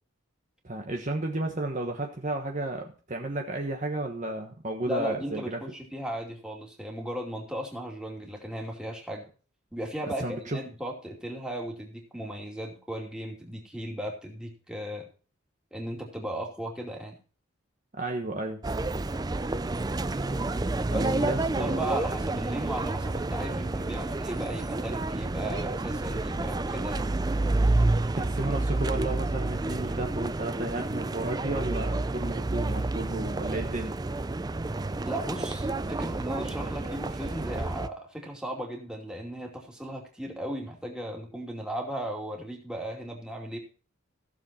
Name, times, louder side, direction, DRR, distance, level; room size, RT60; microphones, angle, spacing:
voice 1, 0.6-5.6 10.2-10.6 17.9-18.6 20.9-22.0 28.2-33.9, right 2 dB, 35° right, 2 dB, 1.2 m, -33 dB
voice 2, 4.9-9.3 9.7-15.1 15.7-17.2 20.9-27.1 35.1-43.6, right 1 dB, 5° right, 0 dB, 2.6 m, -36 dB
sound 1, 18.6-37.9, right 2 dB, 20° right, 0.4 m, -29 dB
15.5 x 7.1 x 4.3 m, 0.38 s
head